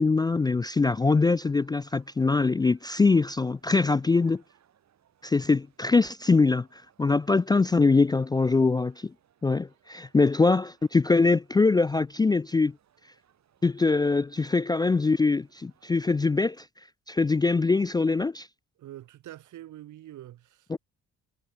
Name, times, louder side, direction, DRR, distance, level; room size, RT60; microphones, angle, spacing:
voice 1, 0.0-4.4 5.2-9.1 9.4-12.7 13.6-16.6 17.1-18.5 20.7-20.8, left 3 dB, 15° left, 0.3 m, -23 dB
sound 1, 1.1-16.7, right 9 dB, 65° right, 8.0 m, -66 dB
voice 2, 18.8-20.8, right 13 dB, 80° right, 3.3 m, -45 dB
cardioid pair, 90°, 30 cm